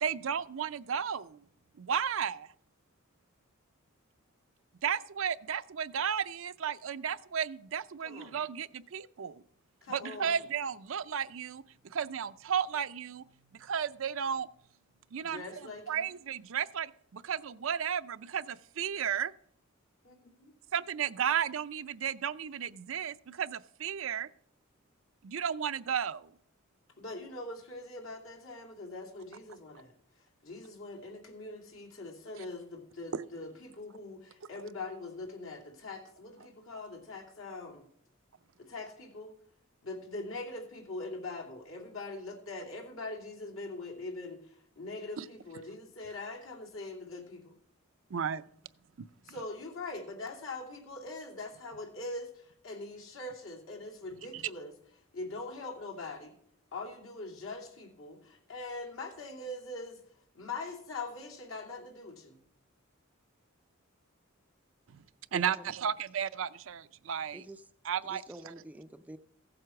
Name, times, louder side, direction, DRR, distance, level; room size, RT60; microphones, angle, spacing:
voice 1, 0.0-1.4 1.8-2.5 4.8-9.4 9.9-13.2 13.5-14.5 15.1-15.4 15.9-19.3 20.7-24.3 25.2-26.3 33.1-33.3 45.2-45.3 48.1-48.4 49.0-49.1 54.3-54.4 64.9-65.0 65.3-67.4 67.8-68.5, right 8 dB, 70° right, 13 dB, 0.5 m, -34 dB
voice 2, 8.0-8.4 9.8-10.4 15.2-16.0 20.0-20.5 27.0-29.9 30.4-37.9 38.6-39.3 39.8-47.5 49.2-54.7 55.1-56.3 56.7-60.0 60.3-62.4, left 2 dB, 75° left, 1 dB, 2.7 m, -42 dB
voice 3, 65.3-65.7 67.3-67.6 68.0-69.2, right 1 dB, 10° right, 9 dB, 0.4 m, -47 dB
15.5 x 7.8 x 5.9 m, 0.67 s
head